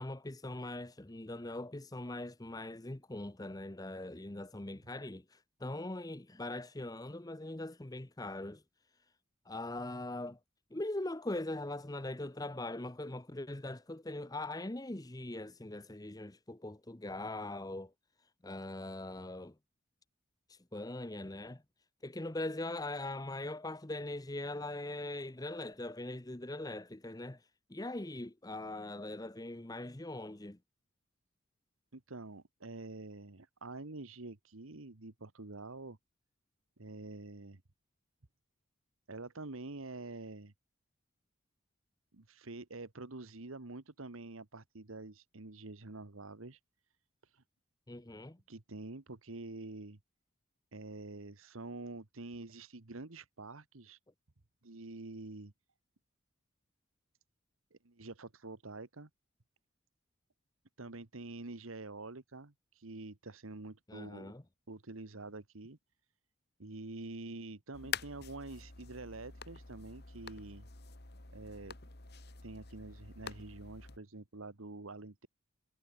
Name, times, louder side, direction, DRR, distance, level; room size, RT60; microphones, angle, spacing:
voice 1, 0.0-8.6 9.4-10.4 10.7-17.9 18.4-19.5 20.5-21.6 22.0-30.6 47.9-48.4 63.9-64.4, left 2 dB, 20° left, 0.8 m, -41 dB
voice 2, 31.9-36.0 36.8-37.6 39.1-40.5 42.1-46.6 47.2-47.4 48.5-50.0 50.7-54.0 54.6-55.5 57.7-59.1 60.8-64.3 64.7-65.8 66.6-70.7 71.3-71.8 72.4-75.3, right 2 dB, 80° right, 1.5 m, -47 dB
sound 1, 67.7-74.0, left 6 dB, 50° left, 1.9 m, -46 dB
head